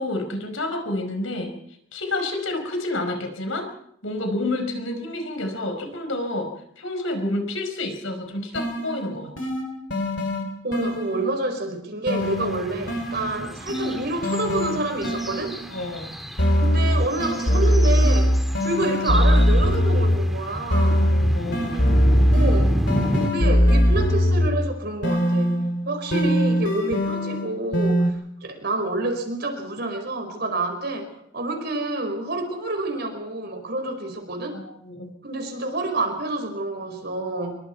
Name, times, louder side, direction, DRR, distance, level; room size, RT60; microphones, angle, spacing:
voice 1, 0.0-1.5 1.9-3.7 4.0-9.3 15.7-16.1 21.0-21.9 34.5-35.1, left 2 dB, 80° left, 6 dB, 4.9 m, -29 dB
sound 1, 8.2-11.5 12.1-15.8 16.4-20.3 20.7-24.7 25.0-28.1, equal, 60° left, 3.3 m, -21 dB
voice 2, 10.6-15.6 16.6-18.3 18.6-21.1 22.3-22.8 23.1-25.6 25.8-28.2 28.4-34.6 35.2-37.6, right 2 dB, 55° right, 5 dB, 5.1 m, -28 dB
sound 2, 12.2-23.3, equal, ahead, 1.9 m, -32 dB
25.5 x 23.0 x 4.7 m, 0.73 s
head